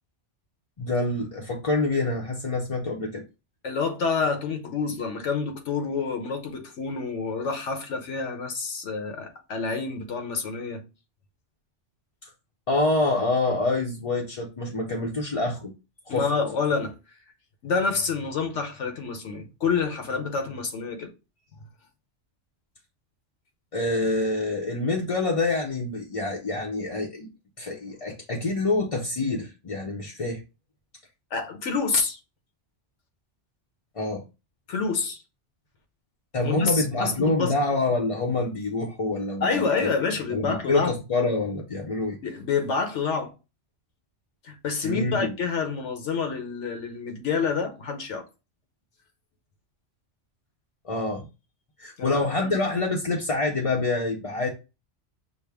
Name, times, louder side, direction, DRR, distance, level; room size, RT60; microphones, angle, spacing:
voice 1, 0.8-3.2 12.2-12.3 12.7-15.7 16.1-16.3 23.7-27.3 27.6-30.4 33.9-34.2 36.3-39.9 40.3-42.2 44.8-45.3 50.8-51.2 51.8-54.5, left 2 dB, 35° left, 0.6 m, -26 dB
voice 2, 3.6-10.8 16.1-17.0 17.6-21.1 31.3-32.2 34.7-35.2 36.4-37.5 39.4-40.9 42.2-43.3 44.4-48.3 52.0-52.5, left 5 dB, 80° left, 1.2 m, -28 dB
6.0 x 2.1 x 3.4 m
omnidirectional pair, 1.2 m